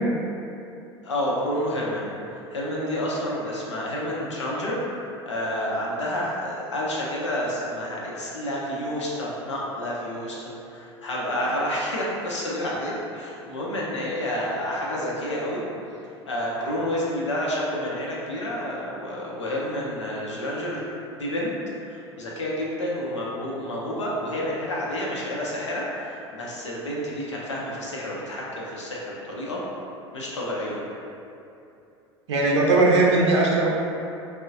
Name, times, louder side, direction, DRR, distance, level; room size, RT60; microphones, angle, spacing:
voice 1, 1.0-15.6 16.3-21.5 21.9-29.6 30.1-30.8, left 1 dB, 85° left, -4 dB, 0.6 m, -29 dB
voice 2, 32.3-33.7, right 2 dB, 75° right, -2 dB, 0.5 m, -19 dB
3.6 x 2.0 x 2.6 m, 2.7 s
figure-of-eight pair, 75°, 15 cm